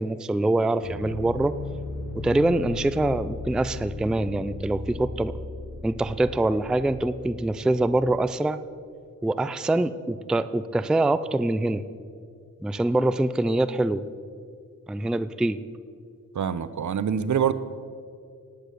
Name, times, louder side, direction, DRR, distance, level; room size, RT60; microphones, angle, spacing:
voice 1, 0.0-1.6 2.1-5.4 5.8-8.6 9.2-11.8 12.6-14.1 14.9-15.6, right 2 dB, 5° right, 14 dB, 0.3 m, -24 dB
sound 1, 0.8-8.0, left 3 dB, 75° left, 4.1 m, -37 dB
voice 2, 16.3-17.5, right 8 dB, 65° right, 14 dB, 0.7 m, -25 dB
18.5 x 8.4 x 6.7 m, 2.3 s
wide cardioid pair, 145°, 32 cm